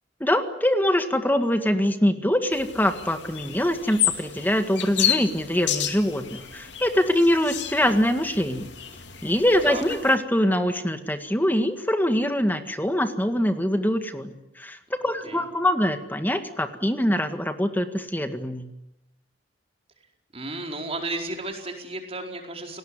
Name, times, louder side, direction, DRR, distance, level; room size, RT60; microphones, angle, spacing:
voice 1, 0.2-8.7 9.2-18.7, left 1 dB, 10° left, 8 dB, 1.8 m, -23 dB
sound 1, 2.5-10.2, left 10 dB, 70° left, 2.4 m, -31 dB
voice 2, 20.3-22.8, right 2 dB, 35° right, 3 dB, 4.5 m, -33 dB
28.5 x 19.5 x 9.9 m, 0.87 s
head